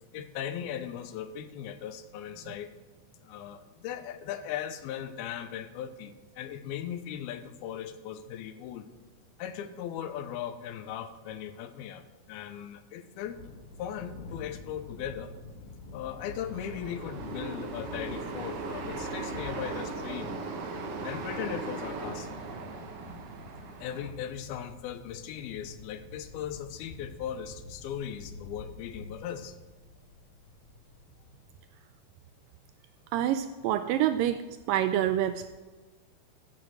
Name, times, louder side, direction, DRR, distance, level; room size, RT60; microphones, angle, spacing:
voice 1, 0.1-2.7 3.2-8.9 9.4-13.4 13.8-15.3 15.9-20.4 21.0-22.4 23.8-29.6, left 9 dB, 85° left, 10 dB, 2.7 m, -38 dB
Thunder, 13.2-31.6, left 3 dB, 70° left, 3.6 m, -47 dB
sound 1, 16.2-24.1, right 3 dB, 65° right, 1.5 m, -38 dB
voice 2, 33.1-34.4 34.7-35.6, right 11 dB, 85° right, 10 dB, 2.0 m, -27 dB
15.0 x 6.2 x 6.3 m, 1.3 s
omnidirectional pair, 4.3 m